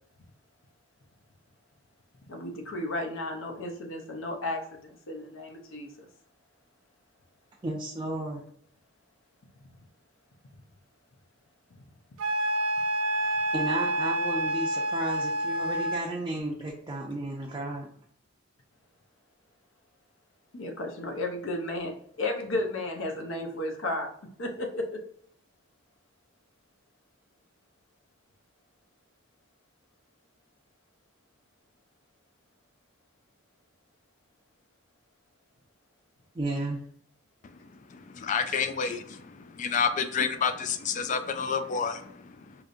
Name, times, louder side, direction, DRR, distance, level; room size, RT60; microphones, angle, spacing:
voice 1, 2.3-6.1 20.5-24.1 24.4-25.0, left 2 dB, 70° left, 3 dB, 0.8 m, -33 dB
voice 2, 7.6-8.4 13.5-17.9 36.3-36.8, right 1 dB, 20° right, -2 dB, 0.5 m, -33 dB
Wind instrument woodwind instrument, 12.2-16.1, right 1 dB, 85° right, 0.5 m, -28 dB
voice 3, 37.9-42.5, left 6 dB, 35° left, 9 dB, 0.3 m, -29 dB
4.9 x 2.6 x 2.5 m, 0.64 s
head